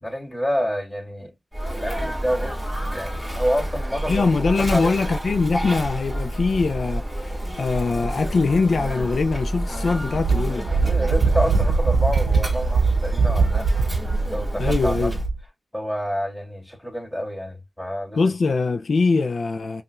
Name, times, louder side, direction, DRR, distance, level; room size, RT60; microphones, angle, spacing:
voice 1, 0.0-1.3 1.7-2.6 2.9-4.3 4.6-5.0 10.8-13.7 14.3-15.1 15.7-18.3, equal, 10° left, 2.6 m, -28 dB
Sneeze, 1.5-15.3, right 1 dB, 20° right, 2.4 m, -29 dB
voice 2, 4.1-10.7 14.6-15.2 18.2-19.8, left 4 dB, 65° left, 0.4 m, -22 dB
Wind, 10.1-15.4, right 4 dB, 70° right, 0.8 m, -21 dB
5.4 x 2.4 x 2.4 m
cardioid pair, 55°, 0 cm